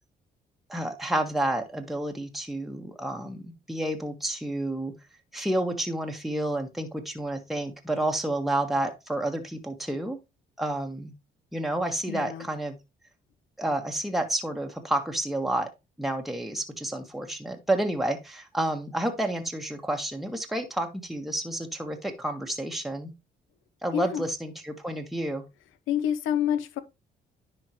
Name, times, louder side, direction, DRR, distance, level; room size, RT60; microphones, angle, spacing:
voice 1, 0.7-4.9 5.3-10.2 10.6-11.1 11.5-12.8 13.6-15.7 16.0-23.1 23.8-25.4, right 1 dB, ahead, 1.5 m, -30 dB
voice 2, 12.1-12.5 23.9-24.2 25.9-26.8, left 9 dB, 85° left, 0.9 m, -27 dB
10.5 x 4.3 x 3.1 m
cardioid pair, 90°, 20 cm